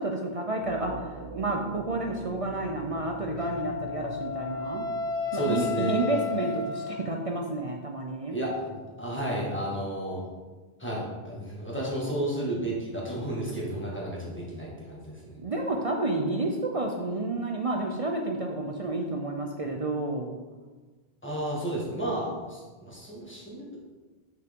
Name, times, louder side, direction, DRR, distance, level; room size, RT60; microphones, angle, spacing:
voice 1, 0.0-4.9 5.3-8.4 15.4-20.3, right 2 dB, 45° right, 2 dB, 0.5 m, -30 dB
sound 1, 0.5-6.4, right 1 dB, 75° right, 1.0 m, -44 dB
Wind instrument woodwind instrument, 3.4-7.3, left 5 dB, 85° left, 1.0 m, -33 dB
voice 2, 5.3-6.0 8.3-10.2 10.8-15.4 21.2-23.8, right 1 dB, 10° left, -4 dB, 1.5 m, -32 dB
6.1 x 5.8 x 3.6 m, 1.3 s
omnidirectional pair, 1.1 m